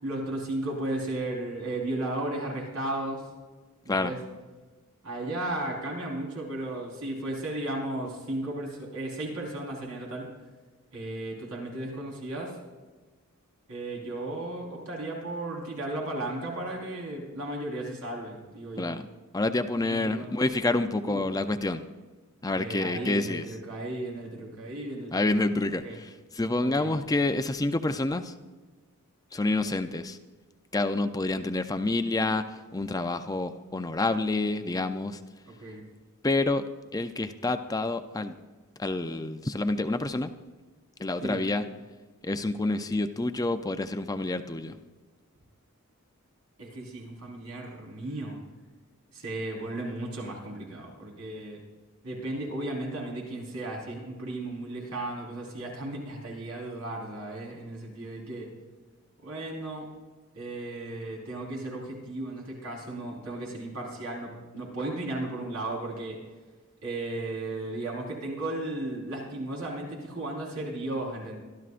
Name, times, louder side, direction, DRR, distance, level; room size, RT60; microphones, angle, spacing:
voice 1, 0.0-3.3 3.8-4.2 5.0-10.3 10.9-12.6 13.7-19.0 19.8-20.3 21.0-21.3 22.5-26.0 26.6-26.9 35.5-35.8 41.2-41.4 46.6-48.4 49.1-51.6 52.0-58.5 59.2-59.9 60.3-66.2 66.8-71.4, right 1 dB, 90° right, -2 dB, 4.4 m, -35 dB
voice 2, 19.3-21.8 22.4-23.4 25.1-26.1 26.4-28.3 29.3-30.2 30.7-35.2 36.2-36.6 36.9-38.3 38.8-40.3 41.0-41.6 42.2-44.8, left 2 dB, 15° left, 8 dB, 0.5 m, -28 dB
25.0 x 12.5 x 2.5 m, 1.3 s
head